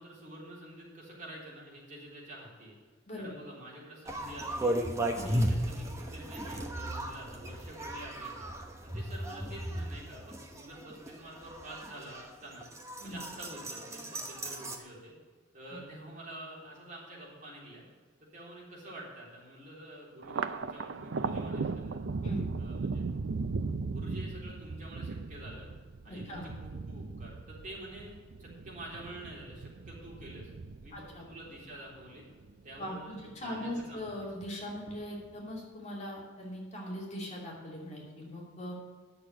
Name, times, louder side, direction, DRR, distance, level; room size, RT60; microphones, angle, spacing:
voice 1, 0.0-2.7 3.2-4.7 5.1-8.5 8.8-12.7 13.0-15.2 15.5-17.8 18.3-22.0 22.6-23.1 23.9-25.7 26.0-30.5 30.8-32.3 32.6-34.3, right 1 dB, 45° right, -5 dB, 3.6 m, -48 dB
sound 1, 4.1-14.8, right 1 dB, 15° right, 1.0 m, -36 dB
Thunder, 20.2-32.9 33.3-34.1 34.4-35.3, right 4 dB, 75° right, 0.5 m, -38 dB
voice 2, 26.1-26.5 30.9-31.3 32.8-38.8, left 1 dB, 35° left, -3 dB, 2.7 m, -40 dB
10.5 x 6.7 x 7.8 m, 1.5 s
head